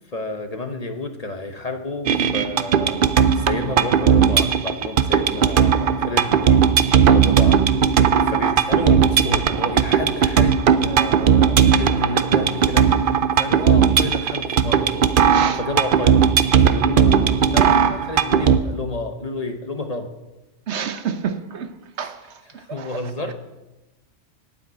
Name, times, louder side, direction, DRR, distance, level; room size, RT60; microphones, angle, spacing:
voice 1, 0.1-3.0 3.3-6.6 7.1-14.9 15.5-16.3 16.6-20.1 22.0-22.1 22.4-23.3, left 2 dB, 35° left, 1.0 m, -30 dB
sound 1, 2.1-18.6, right 7 dB, 55° right, 0.7 m, -17 dB
voice 2, 15.3-15.6 20.7-21.7 22.0-22.1 22.8-22.9, right 7 dB, 70° right, 1.1 m, -28 dB
8.8 x 8.3 x 9.0 m
omnidirectional pair, 1.2 m